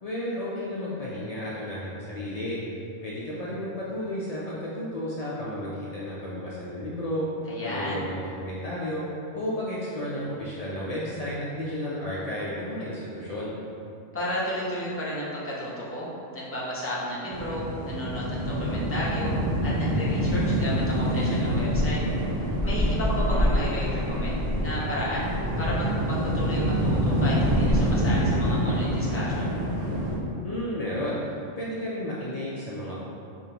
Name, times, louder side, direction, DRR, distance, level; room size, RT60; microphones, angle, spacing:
voice 1, 0.0-2.6 3.0-7.3 7.6-9.0 9.3-13.5 30.4-31.2 31.6-33.0, left 1 dB, 75° left, -7 dB, 0.3 m, -32 dB
voice 2, 7.5-8.1 14.1-16.1 16.3-19.3 19.6-22.0 22.6-29.5, equal, 15° left, -7 dB, 0.5 m, -32 dB
sound 1, 17.3-30.1, equal, 35° right, 0.7 m, -26 dB
5.0 x 2.5 x 2.8 m, 2.6 s
omnidirectional pair, 1.3 m